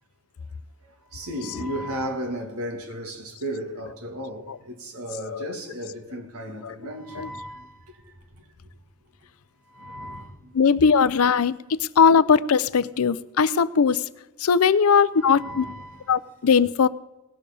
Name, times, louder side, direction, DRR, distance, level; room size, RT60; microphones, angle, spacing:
voice 1, 0.8-8.4 9.7-10.5 15.2-16.2, equal, 85° right, 2.3 m, -35 dB
voice 2, 10.5-14.0 14.4-15.6 16.1-16.9, left 6 dB, 80° left, 0.5 m, -19 dB
19.0 x 6.7 x 5.2 m
head